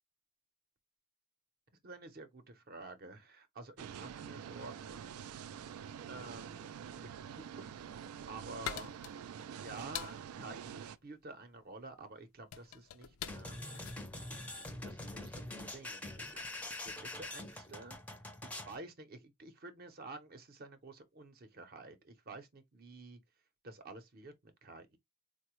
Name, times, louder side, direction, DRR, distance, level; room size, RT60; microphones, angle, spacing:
voice 1, 1.8-5.1 6.1-9.0 9.6-13.8 14.8-16.4 16.8-18.0 18.4-23.2 23.6-25.0, right 3 dB, 45° right, 0.6 m, -50 dB
sound 1, 3.8-11.0, right 8 dB, 85° right, 0.3 m, -47 dB
sound 2, 7.8-15.2, left 10 dB, 70° left, 0.4 m, -47 dB
sound 3, 13.3-18.8, left 1 dB, 5° left, 0.5 m, -44 dB
4.0 x 2.1 x 3.0 m
head